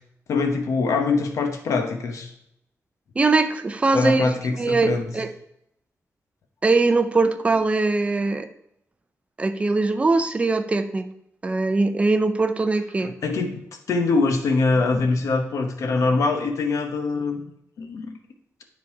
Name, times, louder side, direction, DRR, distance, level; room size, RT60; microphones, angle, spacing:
voice 1, 0.3-2.3 3.9-5.2 13.0-17.5 17.8-18.1, left 3 dB, 85° left, 5 dB, 0.9 m, -23 dB
voice 2, 3.2-4.3 4.6-5.3 6.6-8.5 9.4-11.1 11.4-13.1, right 3 dB, 25° right, 10 dB, 0.5 m, -21 dB
9.7 x 4.0 x 4.6 m, 0.76 s
wide cardioid pair, 165°, 5 cm